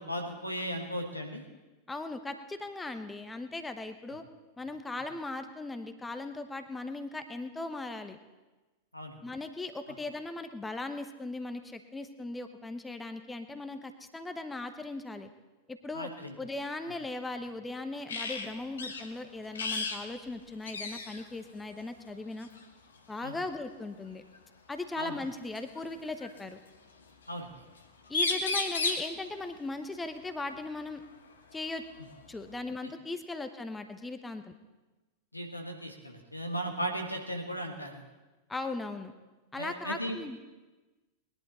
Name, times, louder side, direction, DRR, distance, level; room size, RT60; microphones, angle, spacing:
voice 1, 0.0-1.5 8.9-9.2 15.9-16.3 23.2-23.4 25.0-25.2 27.3-27.5 35.3-38.0 39.6-40.2, equal, 90° left, 2 dB, 1.7 m, -36 dB
voice 2, 1.9-4.2 4.6-8.2 9.2-15.3 15.7-16.1 16.4-22.5 23.1-24.2 24.7-26.6 28.1-31.0 31.5-31.8 32.3-34.6 38.5-39.1 39.5-40.4, left 2 dB, 10° left, 8 dB, 0.9 m, -38 dB
sound 1, 18.1-18.5 18.8-19.0 19.5-20.0 20.3-20.4 20.7-21.2 22.4-22.6 24.3-24.4 25.6-26.4 27.8-27.9 28.1-29.1 31.0-31.1 31.6-32.6, left 3 dB, 70° left, 1.4 m, -33 dB
20.5 x 11.0 x 4.3 m, 1.2 s
figure-of-eight pair, 90°, 0 cm